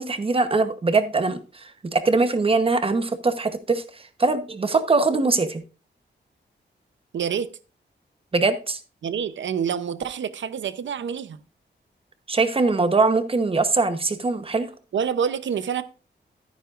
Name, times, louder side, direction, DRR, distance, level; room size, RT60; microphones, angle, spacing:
voice 1, 0.0-5.6 8.3-8.8 12.3-14.7, right 3 dB, 30° right, 1.0 m, -22 dB
voice 2, 7.1-7.5 9.0-11.4 14.9-15.8, right 7 dB, 85° right, 0.8 m, -27 dB
13.0 x 9.5 x 2.5 m
wide cardioid pair, 170°, 19 cm